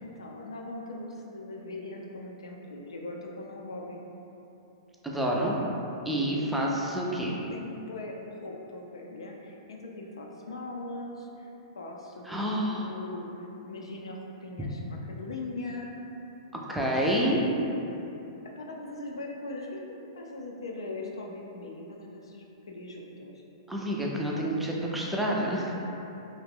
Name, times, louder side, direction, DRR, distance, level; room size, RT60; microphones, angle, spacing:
voice 1, 0.0-4.0 6.1-6.5 7.5-8.2 8.4-11.5 11.8-16.0 16.7-16.9 17.2-18.0 18.6-23.4, left 2 dB, 85° left, -1 dB, 0.4 m, -40 dB
voice 2, 5.0-5.6 6.1-7.3 12.3-12.9 16.7-17.4 23.7-25.7, equal, 5° right, -3 dB, 0.4 m, -28 dB
2.4 x 2.1 x 3.3 m, 2.9 s
hypercardioid pair, 120°, 3 cm